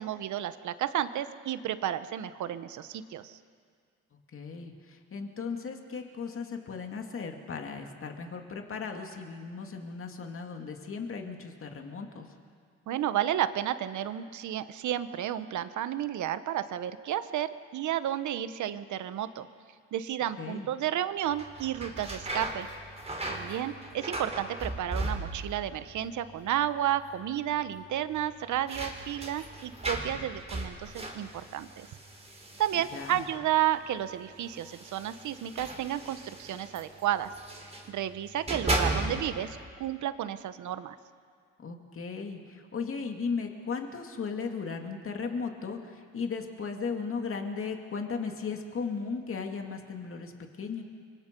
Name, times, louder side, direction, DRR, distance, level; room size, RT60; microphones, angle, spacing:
voice 1, 0.0-3.4 12.9-19.5 19.9-22.7 23.3-31.9 32.6-37.3 37.9-41.0, right 11 dB, 75° right, 12 dB, 1.1 m, -32 dB
voice 2, 4.3-12.3 20.4-20.7 32.9-33.3 41.6-50.8, left 5 dB, 45° left, 3 dB, 2.5 m, -36 dB
sound 1, 21.3-25.7 26.0-26.6 26.9-27.0 28.1-33.5 34.4-37.9 38.3-39.5, right 2 dB, 20° right, 4.5 m, -36 dB
29.5 x 24.0 x 5.4 m, 2.1 s
cardioid pair, 90°, 30 cm